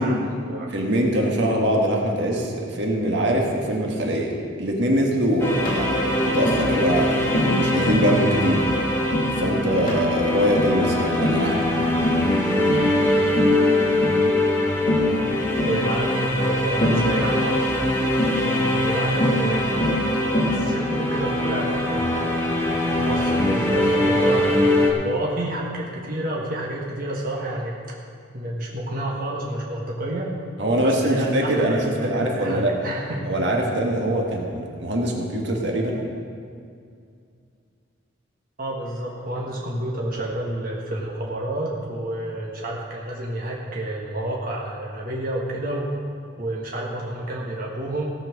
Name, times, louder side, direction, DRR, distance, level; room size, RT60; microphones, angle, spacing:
voice 1, 0.0-0.7 15.6-17.7 18.4-19.9 20.3-22.5 23.0-27.8 28.3-30.3 30.8-33.2 38.6-45.9 46.4-48.1, right 1 dB, 45° right, -3 dB, 1.5 m, -29 dB
voice 2, 0.7-4.3 4.6-8.6 9.4-11.6 30.6-32.7 33.2-36.0, equal, 60° right, 0 dB, 1.6 m, -23 dB
sound 1, 5.4-24.9, left 1 dB, 15° left, 1.4 m, -22 dB
Tap, 5.6-5.8 6.5-6.7 7.3-7.6 7.9-8.1 8.5-8.7 9.1-9.3 9.9-10.1 10.5-10.8 11.2-11.5 12.0-12.3 12.7-12.9 13.4-13.6 14.0-14.2 14.9-15.1 15.6-15.8 16.8-17.1 18.2-18.4 19.2-19.4 19.8-20.0 20.3-20.6, left 1 dB, 45° left, 2.6 m, -24 dB
17.0 x 5.9 x 6.5 m, 2.4 s
head